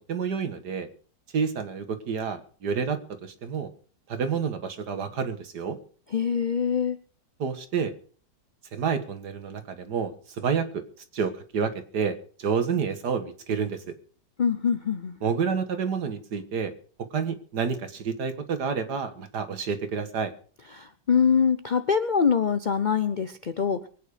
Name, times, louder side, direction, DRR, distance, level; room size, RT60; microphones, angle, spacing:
voice 1, 0.1-0.9 1.3-3.7 4.1-5.8 7.4-7.9 8.7-10.8 11.1-13.9 15.2-16.7 17.1-20.3, right 6 dB, 65° right, 9 dB, 2.1 m, -29 dB
voice 2, 6.1-7.0 14.4-15.2 20.7-23.8, left 6 dB, 80° left, 11 dB, 0.4 m, -24 dB
23.5 x 9.2 x 5.0 m, 0.43 s
omnidirectional pair, 1.9 m